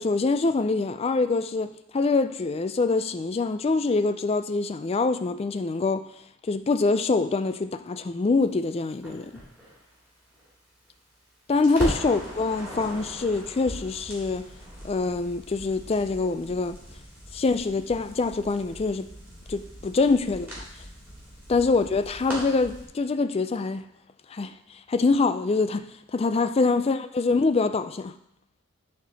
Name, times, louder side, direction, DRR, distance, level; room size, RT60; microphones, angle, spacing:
voice 1, 0.0-6.1 6.5-9.3 11.5-14.4 14.8-16.8 17.3-19.1 19.5-20.6 21.5-23.8 24.3-28.1, left 3 dB, 25° left, 0.3 m, -25 dB
Crackle, 9.0-11.2 11.5-22.8, equal, 10° right, 2.8 m, -39 dB
11.0 x 4.5 x 4.0 m
head